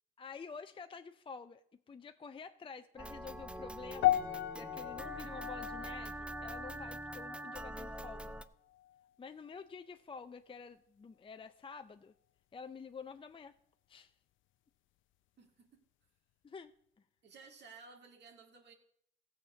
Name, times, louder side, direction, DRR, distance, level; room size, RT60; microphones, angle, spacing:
voice 1, 0.2-4.2 4.5-8.4 9.2-12.1 12.5-13.6 13.9-14.1 16.4-16.7, left 5 dB, 25° left, 9 dB, 0.5 m, -49 dB
sound 1, 3.0-8.4, right 1 dB, 5° right, 0.7 m, -44 dB
sound 2, 4.0-8.4 8.7-9.1 9.7-9.8, left 14 dB, 75° left, 0.5 m, -37 dB
voice 2, 15.4-15.8 17.2-18.7, right 4 dB, 60° right, 2 dB, 2.2 m, -56 dB
15.0 x 7.3 x 6.2 m, 0.71 s
cardioid pair, 90°, 20 cm